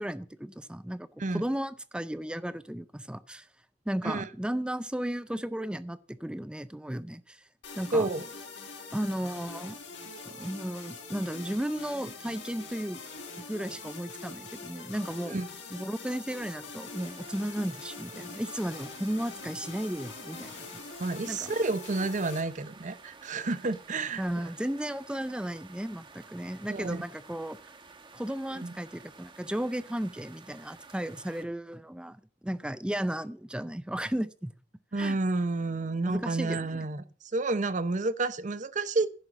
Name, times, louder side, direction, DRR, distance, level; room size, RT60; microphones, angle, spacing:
voice 1, 0.0-1.1 1.3-3.5 3.9-7.4 7.8-8.1 8.9-9.8 10.2-13.0 13.5-15.4 15.7-20.8 21.3-21.6 24.2-27.6 28.1-34.5 35.0-35.2 36.1-36.8, right 1 dB, 5° right, 0.4 m, -34 dB
sound 1, 7.6-22.4, left 4 dB, 75° left, 3.5 m, -44 dB
voice 2, 7.9-8.2 15.3-15.5 21.0-24.2 26.7-27.0 28.6-28.7 34.9-37.0 37.3-39.1, right 2 dB, 45° right, 0.7 m, -30 dB
sound 2, 17.0-31.4, right 4 dB, 25° right, 1.2 m, -52 dB
10.5 x 5.6 x 7.7 m
head